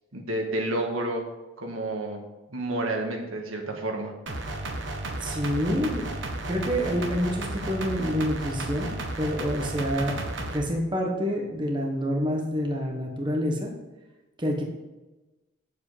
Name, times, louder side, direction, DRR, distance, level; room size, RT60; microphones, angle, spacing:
voice 1, 0.1-1.3 1.6-2.2 2.5-4.1, right 1 dB, 80° right, 2 dB, 1.8 m, -30 dB
sound 1, 4.3-10.6, right 2 dB, 60° right, 1.3 m, -33 dB
voice 2, 5.2-6.0 6.5-10.1 10.5-13.7 14.4-14.6, equal, 20° right, 0 dB, 1.4 m, -27 dB
9.3 x 7.6 x 5.1 m, 1.1 s
head